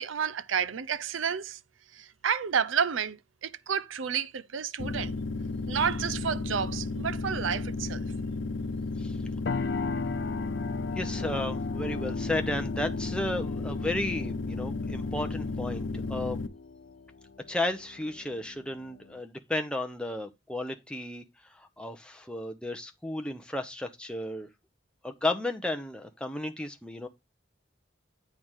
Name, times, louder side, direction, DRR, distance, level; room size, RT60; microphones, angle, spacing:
voice 1, 0.0-1.6 1.9-5.1 5.7-8.0, right 7 dB, 85° right, 0.6 m, -30 dB
sound 1, 4.8-16.5, left 3 dB, 75° left, 0.8 m, -33 dB
sound 2, 9.5-19.2, left 4 dB, 60° left, 0.5 m, -39 dB
voice 2, 10.9-16.4 17.5-21.2 21.5-24.5 25.0-27.1, left 1 dB, 5° left, 0.8 m, -33 dB
8.9 x 3.6 x 6.2 m
head